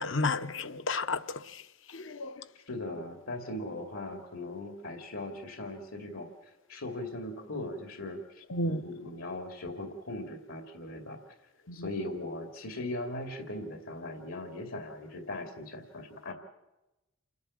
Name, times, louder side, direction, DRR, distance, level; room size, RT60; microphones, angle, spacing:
voice 1, 0.0-1.4 1.9-2.3 8.5-8.8 11.7-11.8, left 2 dB, 65° left, 0.9 m, -31 dB
voice 2, 2.5-11.2 11.7-16.3, left 1 dB, 80° left, 2.6 m, -39 dB
28.5 x 11.0 x 8.7 m
head